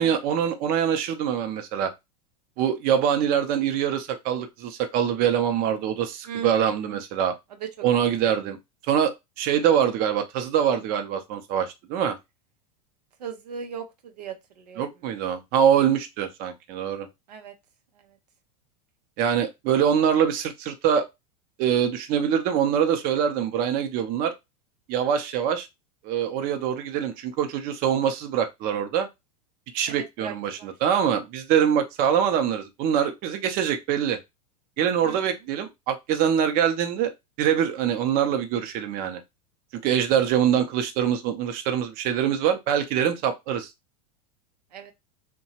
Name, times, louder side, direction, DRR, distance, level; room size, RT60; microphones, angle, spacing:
voice 1, 0.0-1.9 2.6-7.3 7.8-8.6 8.9-12.2 14.8-17.1 19.2-21.1 21.6-24.3 24.9-25.7 26.0-29.1 29.7-34.2 34.8-37.1 37.4-39.2 39.8-43.7, right 9 dB, 45° right, 0.6 m, -24 dB
voice 2, 6.3-7.0 7.6-7.7 8.0-8.3 13.2-14.9 17.3-17.5 29.9-30.3 30.6-30.7 35.0-35.2 44.7-44.9, right 7 dB, 90° right, 0.6 m, -37 dB
2.8 x 2.2 x 2.8 m
hypercardioid pair, 115°, 20 cm